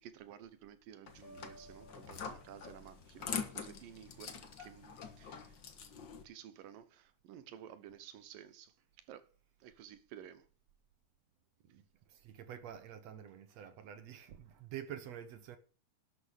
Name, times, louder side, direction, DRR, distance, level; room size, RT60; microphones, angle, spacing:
voice 1, 0.0-5.5 6.2-9.3 9.6-10.5, right 10 dB, 85° right, 2.8 m, -53 dB
sound 1, 1.1-6.2, left 6 dB, 50° left, 1.5 m, -45 dB
sound 2, 1.2-3.1, right 1 dB, ahead, 4.0 m, -58 dB
voice 2, 12.1-15.6, right 10 dB, 65° right, 1.8 m, -48 dB
12.0 x 6.9 x 6.5 m
omnidirectional pair, 3.8 m